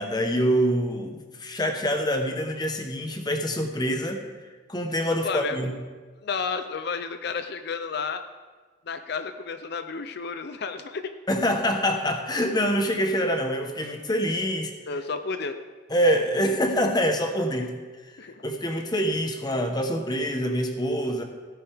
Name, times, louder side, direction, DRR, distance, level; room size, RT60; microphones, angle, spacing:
voice 1, 0.0-4.2 4.7-5.7 11.3-14.7 15.9-17.7 18.4-21.2, equal, 20° left, 4 dB, 1.1 m, -25 dB
voice 2, 5.1-5.6 6.2-8.2 8.9-11.1 14.9-15.6 18.2-18.4, left 5 dB, 55° left, 9 dB, 0.5 m, -32 dB
16.5 x 9.1 x 3.5 m, 1.4 s
head